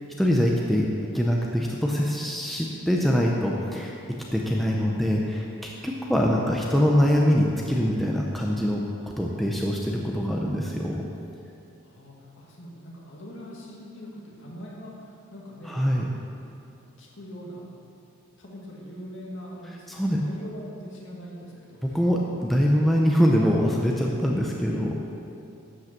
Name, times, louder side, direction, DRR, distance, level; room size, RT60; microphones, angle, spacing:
voice 1, 0.2-0.9 1.1-3.9 4.3-8.9 9.2-11.0 15.7-16.1 19.9-20.2 21.8-24.9, equal, ahead, -2 dB, 0.6 m, -23 dB
voice 2, 11.8-16.1 16.8-17.6 18.4-22.5, equal, 55° left, -3 dB, 2.1 m, -42 dB
12.0 x 5.5 x 7.3 m, 2.7 s
head